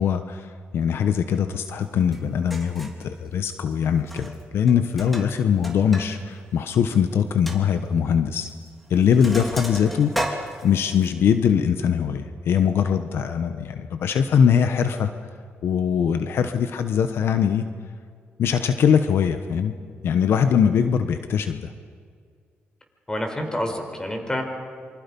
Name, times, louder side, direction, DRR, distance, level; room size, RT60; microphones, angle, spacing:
voice 1, 0.0-8.5 8.9-15.1 15.6-17.6 18.4-19.7 20.0-21.7, left 7 dB, 75° left, 9 dB, 1.1 m, -22 dB
Sink (filling or washing), 2.1-2.2 2.5-3.0 4.0-4.4 4.7-6.1 6.4-6.5 6.9-7.0 7.5-7.6 8.5-8.7 8.9-11.1, equal, ahead, 3.1 m, -33 dB
voice 2, 23.1-24.4, left 1 dB, 15° left, 4 dB, 4.5 m, -28 dB
26.5 x 25.0 x 5.4 m, 2.1 s
cardioid pair, 85°, 4 cm